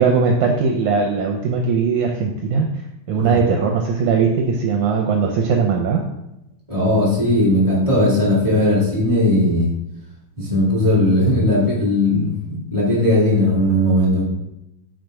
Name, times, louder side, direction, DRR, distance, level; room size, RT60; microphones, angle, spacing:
voice 1, 0.0-2.7 3.1-6.0, right 5 dB, 80° right, 1 dB, 1.8 m, -19 dB
voice 2, 6.7-9.7 10.4-14.2, left 1 dB, 15° left, -6 dB, 1.1 m, -17 dB
6.5 x 4.0 x 4.7 m, 0.86 s
omnidirectional pair, 4.1 m